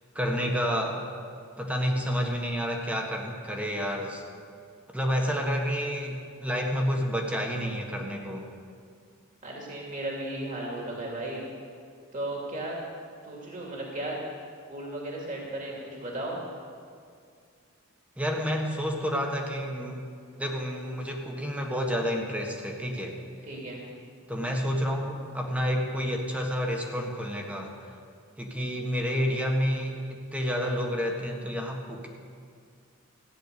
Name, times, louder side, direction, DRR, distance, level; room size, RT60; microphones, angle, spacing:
voice 1, 0.1-1.0 1.6-4.2 4.9-8.5 18.2-20.1 20.4-23.2 24.3-27.7 28.4-32.1, equal, 5° right, 1 dB, 1.5 m, -29 dB
voice 2, 9.4-11.4 12.1-12.8 13.2-14.2 14.7-16.4 23.4-23.8, right 1 dB, 40° right, -2 dB, 2.5 m, -35 dB
15.5 x 10.0 x 6.8 m, 2.2 s
head